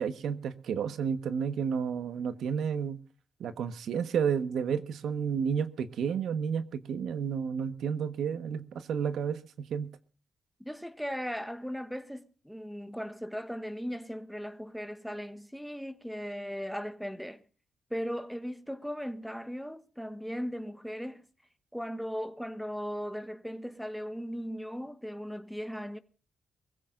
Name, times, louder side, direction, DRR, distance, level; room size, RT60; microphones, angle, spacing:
voice 1, 0.0-3.0 3.4-9.9, right 7 dB, 85° right, 1.4 m, -31 dB
voice 2, 10.6-17.4 17.9-21.2 21.7-26.0, equal, ahead, 1.4 m, -37 dB
22.5 x 15.5 x 2.6 m
cardioid pair, 85°, 0 cm